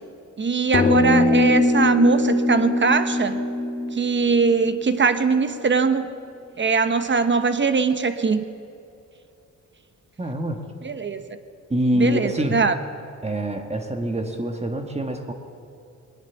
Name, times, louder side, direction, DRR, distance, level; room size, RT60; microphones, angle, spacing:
voice 1, 0.4-3.4 3.9-6.1 6.6-8.4 10.8-11.4 12.0-12.7, right 4 dB, 40° right, 10 dB, 1.0 m, -21 dB
sound 1, 0.7-5.4, left 2 dB, 30° left, 1.3 m, -22 dB
voice 2, 10.2-10.6 11.7-12.6 13.2-15.3, equal, 20° right, 5 dB, 1.5 m, -25 dB
20.5 x 19.5 x 7.1 m, 2.6 s
wide cardioid pair, 130°, 30 cm